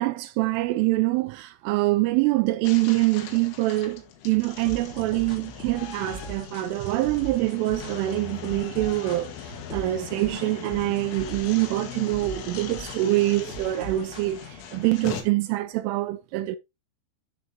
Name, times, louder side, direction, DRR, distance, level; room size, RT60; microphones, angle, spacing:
voice 1, 0.0-16.6, right 18 dB, 80° right, 3.0 m, -25 dB
sound 1, 2.6-15.2, left 8 dB, 70° left, 4.1 m, -40 dB
sound 2, 4.6-14.7, right 2 dB, 40° left, 1.0 m, -40 dB
12.5 x 6.5 x 2.8 m
omnidirectional pair, 6.0 m